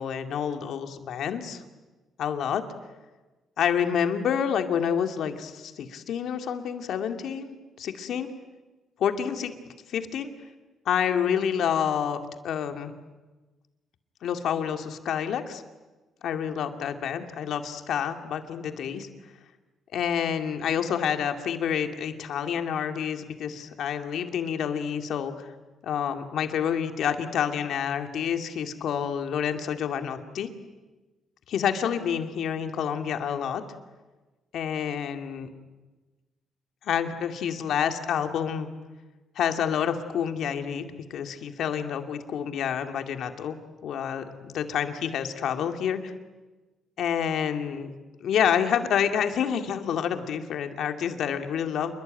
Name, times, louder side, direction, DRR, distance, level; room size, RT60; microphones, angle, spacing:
voice 1, 0.0-1.6 2.2-2.6 3.6-8.3 9.0-9.5 9.9-10.3 10.9-12.9 14.2-15.6 16.2-19.1 19.9-25.5 25.8-30.5 31.5-33.6 34.5-35.5 36.8-38.7 39.4-43.6 43.8-46.1 47.0-51.9, left 8 dB, 70° left, 7 dB, 2.5 m, -28 dB
28.0 x 22.5 x 9.2 m, 1.2 s
cardioid pair, 90°, 0 cm